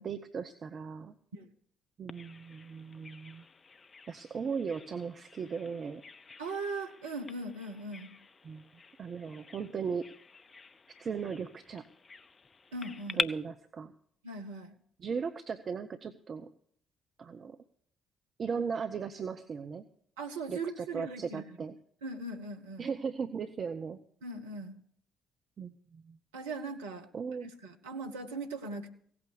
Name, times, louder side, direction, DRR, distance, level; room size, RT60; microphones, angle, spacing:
voice 1, 0.0-1.1 2.0-3.4 4.1-6.0 8.4-8.6 9.0-10.1 11.0-11.8 13.2-13.9 15.0-16.5 17.2-17.6 18.4-19.8 20.5-21.8 22.8-24.0 25.6-26.2 27.1-27.5, right 6 dB, 40° right, 9 dB, 0.7 m, -37 dB
Bird vocalization bird call bird song, 2.1-13.2, left 4 dB, 35° left, 0.6 m, -44 dB
voice 2, 6.4-8.2 12.7-13.2 14.2-14.7 20.2-21.5 22.0-22.9 24.2-24.7 26.3-27.1 27.4-28.9, right 3 dB, 75° right, 4 dB, 1.1 m, -39 dB
17.0 x 8.7 x 6.7 m, 0.62 s
figure-of-eight pair, 45°, 0 cm